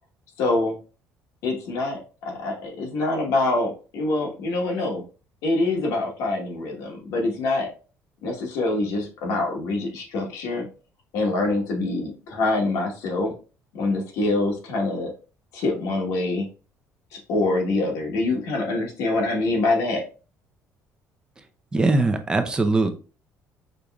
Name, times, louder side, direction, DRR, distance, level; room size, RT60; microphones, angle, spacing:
voice 1, 0.4-0.8 1.4-5.0 5.4-7.7 8.2-10.7 11.1-13.3 13.7-15.1 15.5-16.5 17.1-20.0, left 2 dB, 80° left, 0 dB, 1.3 m, -25 dB
voice 2, 21.7-22.9, right 2 dB, 15° right, 7 dB, 0.5 m, -21 dB
5.1 x 3.0 x 2.3 m, 0.35 s
cardioid pair, 160°, 6 cm